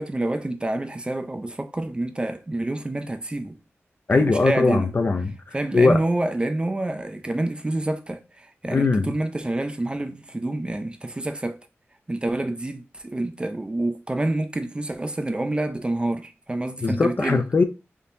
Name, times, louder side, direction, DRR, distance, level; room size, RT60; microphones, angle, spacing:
voice 1, 0.0-3.6 4.1-4.9 5.5-11.6 12.1-17.4, right 2 dB, 20° right, 0.4 m, -27 dB
voice 2, 4.1-5.3 5.7-6.0 8.7-9.1 16.8-17.6, left 3 dB, 45° left, 0.4 m, -20 dB
3.6 x 2.8 x 2.6 m
wide cardioid pair, 105°, 5 cm